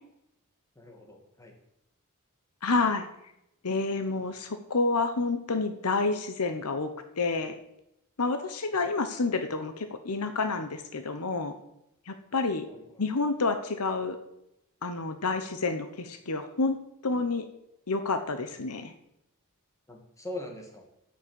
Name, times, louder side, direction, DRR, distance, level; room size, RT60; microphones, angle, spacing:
voice 1, 0.8-1.5 8.7-8.8 12.7-13.0 19.9-20.9, left 1 dB, 15° left, 1 dB, 2.4 m, -42 dB
voice 2, 2.6-3.1 3.6-6.9 7.2-7.5 8.2-11.5 12.1-12.7 13.0-14.2 14.8-16.8 17.0-17.5 17.9-18.9, left 3 dB, 80° left, 8 dB, 1.1 m, -29 dB
11.5 x 6.6 x 8.3 m, 0.83 s
head